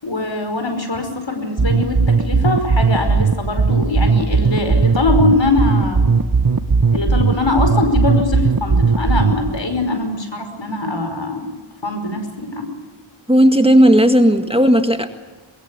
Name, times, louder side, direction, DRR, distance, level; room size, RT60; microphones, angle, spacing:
voice 1, 0.0-6.1 6.9-11.5 11.8-12.7, left 2 dB, 60° left, 6 dB, 5.3 m, -22 dB
sound 1, 1.6-9.6, right 4 dB, 40° right, 1.3 m, -16 dB
voice 2, 13.3-15.1, equal, 10° right, 7 dB, 1.9 m, -13 dB
23.5 x 22.0 x 8.3 m, 1.2 s
wide cardioid pair, 50°, 49 cm